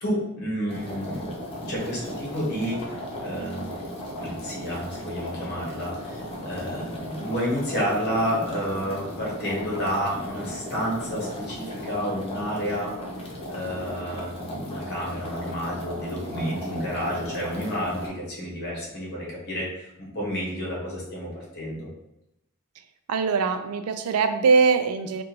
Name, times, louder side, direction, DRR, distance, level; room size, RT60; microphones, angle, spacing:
voice 1, 0.0-3.7 4.2-13.0 13.5-21.9, equal, 50° left, -4 dB, 1.4 m, -30 dB
sound 1, 0.7-18.1, equal, 25° left, 0.8 m, -36 dB
voice 2, 23.1-25.2, right 5 dB, 85° right, 8 dB, 0.4 m, -22 dB
4.6 x 2.5 x 3.0 m, 0.86 s
head